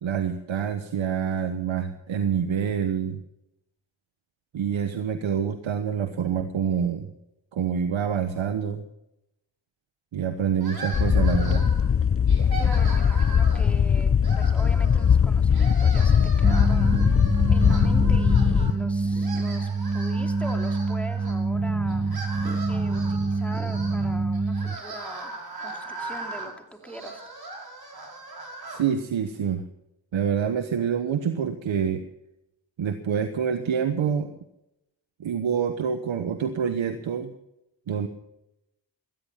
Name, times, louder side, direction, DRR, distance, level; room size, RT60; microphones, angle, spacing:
voice 1, 0.0-3.2 4.5-7.1 7.5-8.8 10.1-11.7 28.7-29.6 30.1-32.0 32.8-34.3 35.2-37.3 37.9-38.1, right 7 dB, 80° right, 8 dB, 1.2 m, -26 dB
sound 1, 10.6-11.9 12.3-13.7 14.2-15.2 15.5-18.7 19.1-21.3 21.9-28.8, right 3 dB, 50° right, 6.2 m, -39 dB
sound 2, 10.9-18.7, left 7 dB, 30° left, 0.6 m, -20 dB
voice 2, 12.6-17.2 17.5-22.1 22.7-27.2, equal, 5° left, 4 dB, 2.9 m, -41 dB
sound 3, 16.4-24.8, right 3 dB, 15° right, 0.9 m, -26 dB
18.0 x 13.5 x 5.7 m, 0.88 s
cardioid pair, 55°, 46 cm